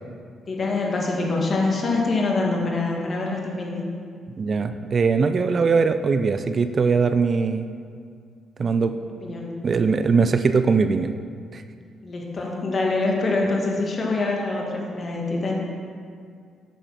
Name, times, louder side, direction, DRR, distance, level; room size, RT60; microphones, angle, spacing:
voice 1, 0.5-3.9 9.2-9.6 12.0-15.5, left 3 dB, 40° left, -2 dB, 2.2 m, -25 dB
voice 2, 4.4-7.7 8.6-8.9 9.6-11.1 11.5-11.6, right 5 dB, 40° right, 9 dB, 0.5 m, -21 dB
9.2 x 6.8 x 5.9 m, 2.2 s
cardioid pair, 90°, 0 cm